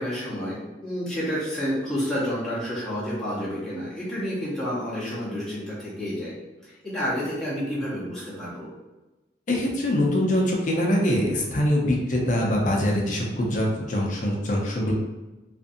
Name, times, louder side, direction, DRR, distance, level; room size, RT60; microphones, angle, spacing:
voice 1, 0.0-6.3 6.6-8.7, equal, 5° left, -10 dB, 0.8 m, -30 dB
voice 2, 9.5-14.9, left 1 dB, 45° left, -2 dB, 0.5 m, -23 dB
2.5 x 2.5 x 2.6 m, 1.1 s
head